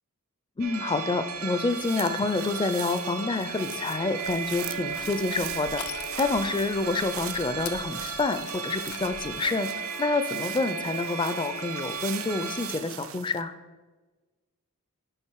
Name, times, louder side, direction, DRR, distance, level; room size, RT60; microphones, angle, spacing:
voice 1, 0.6-13.5, left 3 dB, 20° left, 10 dB, 0.4 m, -28 dB
sound 1, 0.6-12.8, right 6 dB, 80° right, 1.2 m, -35 dB
sound 2, 1.5-13.4, right 12 dB, 65° right, 0.4 m, -42 dB
Crushing, 4.2-9.4, left 8 dB, 80° left, 0.6 m, -44 dB
9.7 x 5.2 x 4.7 m, 1.3 s
head